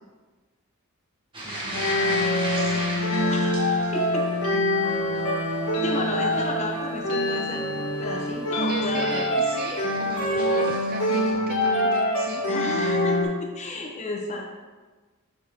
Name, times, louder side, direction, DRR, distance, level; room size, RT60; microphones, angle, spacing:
sound 1, 1.3-11.3, right 1 dB, 20° right, 1.3 m, -38 dB
voice 1, 1.4-2.2 2.5-2.9 8.7-12.4, right 3 dB, 40° right, 2 dB, 0.5 m, -37 dB
sound 2, 1.7-13.2, left 1 dB, 90° left, 1.6 m, -25 dB
voice 2, 3.9-4.4 5.8-9.2 10.3-10.6 12.5-14.5, left 2 dB, 30° left, 0 dB, 0.8 m, -32 dB
7.5 x 5.9 x 2.8 m, 1.3 s
head